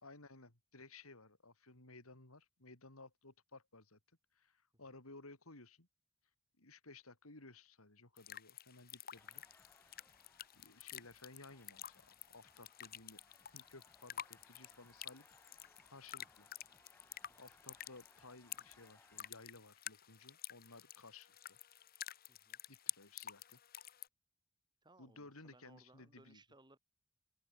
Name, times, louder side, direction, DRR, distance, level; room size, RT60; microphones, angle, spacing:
voice 1, 0.0-4.0 4.3-5.9 6.6-9.9 10.6-13.2 13.5-15.6 15.9-16.5 17.4-21.6 22.7-23.6 25.0-26.4, left 3 dB, 85° left, 4.4 m, -58 dB
sound 1, 8.2-24.1, left 11 dB, 45° left, 1.2 m, -51 dB
sound 2, 9.1-19.3, left 2 dB, 10° left, 2.5 m, -69 dB
voice 2, 22.3-22.6 24.8-26.8, right 2 dB, 20° right, 4.6 m, -65 dB
open air
head